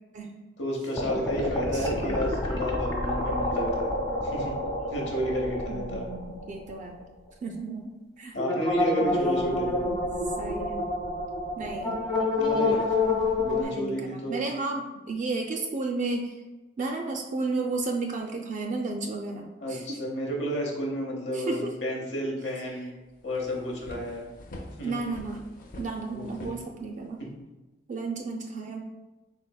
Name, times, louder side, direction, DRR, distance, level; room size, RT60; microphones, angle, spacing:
voice 1, 0.6-3.9 4.2-4.5 4.9-6.0 8.3-9.8 12.4-12.8 13.4-14.4 19.6-22.9 23.2-24.2 24.8-25.0 26.1-26.5, equal, 75° left, -1 dB, 1.0 m, -31 dB
sound 1, 1.0-6.7 7.0-7.1 8.4-13.6, left 2 dB, 25° left, 1.1 m, -28 dB
voice 2, 1.7-2.5 5.7-7.0 7.4-8.4 9.0-10.0 10.4-10.9 11.6-12.0 12.6-12.8 13.6-16.4 16.8-20.0 21.3-21.7 24.8-25.4 25.8-27.2 27.9-28.9, right 3 dB, 45° right, 2 dB, 0.3 m, -33 dB
sound 2, 23.1-27.3, left 1 dB, 50° left, 0.5 m, -45 dB
4.0 x 3.8 x 2.2 m, 1.1 s
head